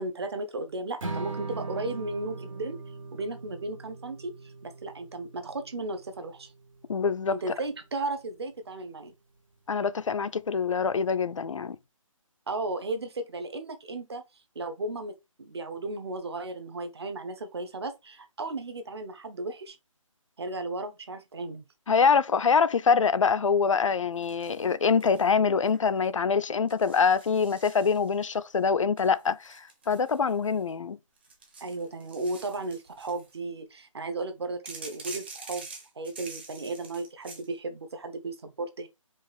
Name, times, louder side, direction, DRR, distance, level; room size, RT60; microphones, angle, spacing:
voice 1, 0.0-2.8 3.1-6.5 7.3-9.1 12.5-14.2 14.5-19.8 20.4-21.6 31.6-35.7 36.0-38.9, right 2 dB, 50° right, 0.9 m, -35 dB
Strum, 1.0-7.3, right 3 dB, 70° right, 1.7 m, -40 dB
voice 2, 6.9-7.4 9.7-11.8 21.9-31.0, left 5 dB, 65° left, 0.5 m, -25 dB
sound 1, 24.2-25.3 25.6-26.1 26.7-28.3 29.0-30.7 31.2-33.3 34.7-37.5, right 3 dB, 20° right, 0.6 m, -46 dB
4.8 x 2.5 x 4.0 m
hypercardioid pair, 170°, 18 cm